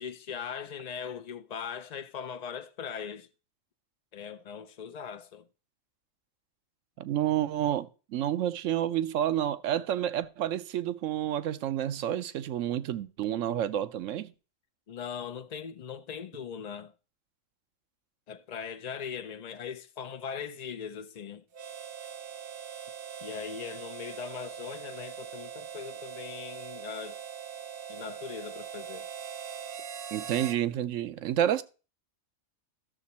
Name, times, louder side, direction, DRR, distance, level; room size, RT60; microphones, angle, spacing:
voice 1, 0.0-3.3 4.1-5.5 14.9-16.9 18.3-21.4 23.2-27.2 27.9-29.1, left 7 dB, 60° left, 0.4 m, -40 dB
voice 2, 7.0-14.3 30.1-31.6, right 11 dB, 75° right, 1.0 m, -29 dB
Harmonica, 21.5-30.6, right 8 dB, 55° right, 0.8 m, -41 dB
12.5 x 6.8 x 4.2 m
omnidirectional pair, 1.4 m